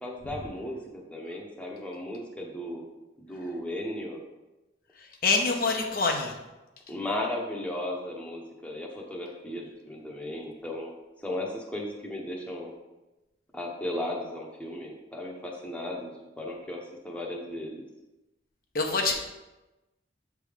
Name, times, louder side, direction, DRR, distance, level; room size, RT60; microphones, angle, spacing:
voice 1, 0.0-2.8 3.2-4.2 6.9-10.9 11.2-12.7 13.5-17.9, left 1 dB, 5° left, -1 dB, 0.8 m, -35 dB
voice 2, 5.2-6.3 18.7-19.1, left 3 dB, 50° left, 2 dB, 0.7 m, -25 dB
7.4 x 3.5 x 5.0 m, 1.0 s
head